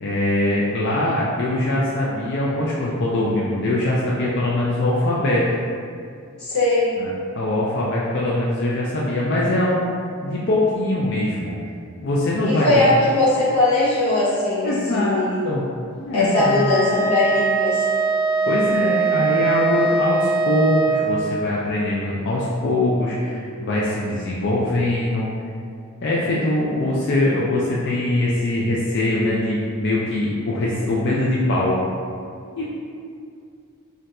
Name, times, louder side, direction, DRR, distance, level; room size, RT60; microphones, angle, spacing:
voice 1, 0.0-5.4 7.0-11.5 12.0-12.8 14.6-15.7 16.0-16.7 18.5-25.3 26.0-31.8 32.6-32.7, left 1 dB, 50° left, -6 dB, 0.3 m, -22 dB
voice 2, 6.4-7.0 12.4-15.4 16.1-17.9, left 2 dB, 90° left, -9 dB, 1.1 m, -20 dB
Wind instrument woodwind instrument, 16.3-21.1, right 4 dB, 20° right, 0.5 m, -21 dB
2.5 x 2.2 x 4.0 m, 2.4 s
head